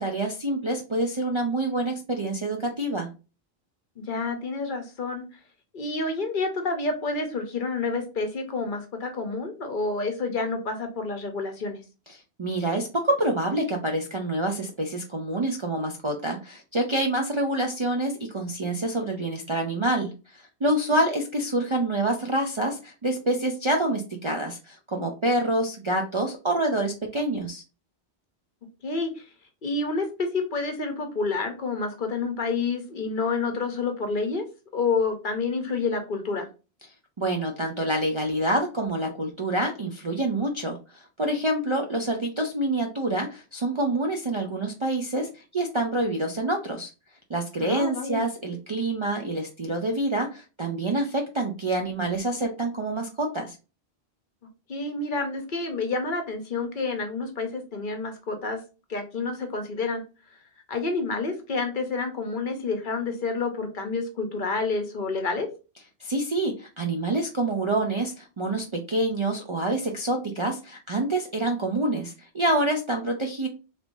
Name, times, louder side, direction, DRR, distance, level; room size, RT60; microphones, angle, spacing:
voice 1, 0.0-3.1 12.1-27.6 37.2-46.9 47.3-53.6 66.0-73.5, right 1 dB, 40° right, 2 dB, 0.4 m, -27 dB
voice 2, 4.0-5.2 5.7-11.8 20.9-21.0 28.8-29.2 29.6-34.4 34.7-36.5 47.6-48.3 54.7-58.6 58.9-60.0 60.7-65.5, left 3 dB, 55° left, 5 dB, 0.9 m, -29 dB
3.4 x 3.1 x 2.5 m, 0.31 s
omnidirectional pair, 1.1 m